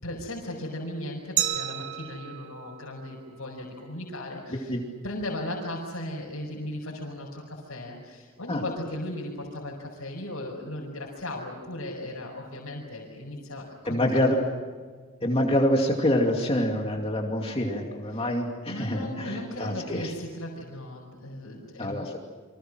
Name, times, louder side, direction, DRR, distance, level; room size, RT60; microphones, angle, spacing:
voice 1, 0.0-4.8 5.0-14.2 18.1-18.2 18.7-22.1, left 1 dB, 85° left, -3 dB, 5.3 m, -37 dB
Glass, 1.4-4.1, right 11 dB, 75° right, 1.8 m, -33 dB
voice 2, 4.5-4.8 8.5-8.6 13.9-14.4 15.2-20.1 21.8-22.2, left 1 dB, 25° left, 1 dB, 2.5 m, -26 dB
30.0 x 25.0 x 6.3 m, 1.5 s
head